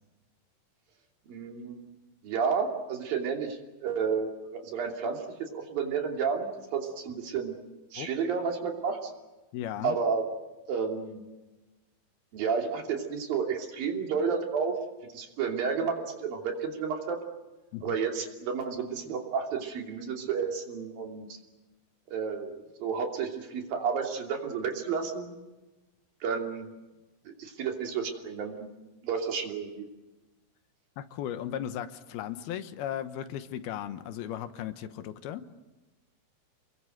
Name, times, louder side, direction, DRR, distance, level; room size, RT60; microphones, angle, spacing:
voice 1, 1.3-1.8 2.2-7.5 7.9-9.1 9.8-10.2 10.7-11.2 12.3-14.8 15.1-17.2 17.8-21.3 22.1-25.3 26.2-26.7 27.4-28.7 29.0-29.8, right 6 dB, 65° right, 3 dB, 4.6 m, -31 dB
voice 2, 9.5-10.0 17.7-18.0 31.0-35.4, left 10 dB, 80° left, 11 dB, 3.0 m, -36 dB
28.5 x 21.5 x 7.9 m, 1.1 s
omnidirectional pair, 4.5 m